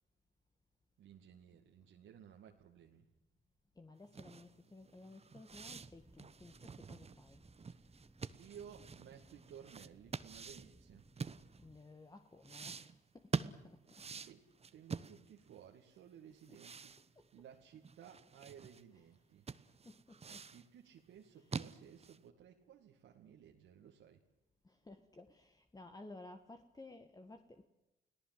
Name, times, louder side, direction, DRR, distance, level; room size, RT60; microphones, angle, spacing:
voice 1, 1.0-3.1 7.7-7.9 8.4-11.1 14.1-14.4 14.7-16.9 17.3-19.5 20.2-24.2, right 9 dB, 80° right, 1 dB, 2.3 m, -57 dB
voice 2, 3.8-7.4 11.6-14.0 16.5-16.6 17.2-17.3 19.6-20.5 21.4-21.5 24.6-27.7, left 2 dB, 20° left, 6 dB, 1.8 m, -56 dB
sound 1, 4.1-11.9 12.4-15.6 15.9-16.0 16.4-18.8 19.2-19.3 19.5-20.7 21.1-22.3, right 5 dB, 30° right, 1.1 m, -46 dB
sound 2, 5.5-11.8, right 2 dB, 10° right, 1.8 m, -64 dB
30.0 x 18.0 x 7.8 m, 0.93 s
cardioid pair, 90°, 20 cm